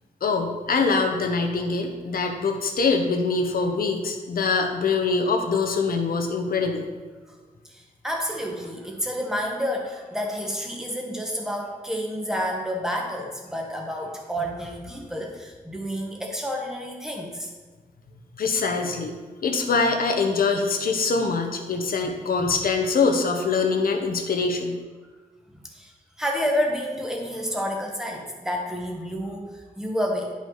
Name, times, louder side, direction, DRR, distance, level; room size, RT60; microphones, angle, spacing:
voice 1, 0.2-6.9 18.4-19.1 19.4-24.8, left 4 dB, 70° left, 3 dB, 0.9 m, -24 dB
voice 2, 7.6-17.5 22.0-22.1 25.7-30.3, equal, 5° right, 0 dB, 1.2 m, -29 dB
10.5 x 5.2 x 3.9 m, 1.4 s
wide cardioid pair, 165°, 15 cm